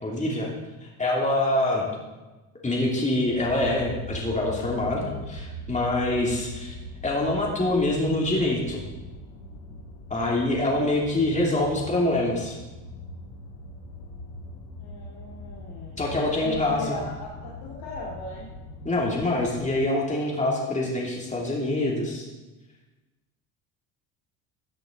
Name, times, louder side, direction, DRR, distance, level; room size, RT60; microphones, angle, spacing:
voice 1, 0.0-0.5 0.8-1.8 2.6-6.7 7.0-8.8 10.1-12.6 16.0-17.0 18.8-22.3, left 2 dB, 15° left, -2 dB, 2.8 m, -25 dB
sound 1, 3.3-19.8, left 1 dB, 85° left, 1.4 m, -41 dB
voice 2, 14.8-18.5, left 1 dB, 65° left, -4 dB, 2.4 m, -38 dB
14.5 x 7.9 x 3.9 m, 1.2 s
supercardioid pair, 75°, 41 cm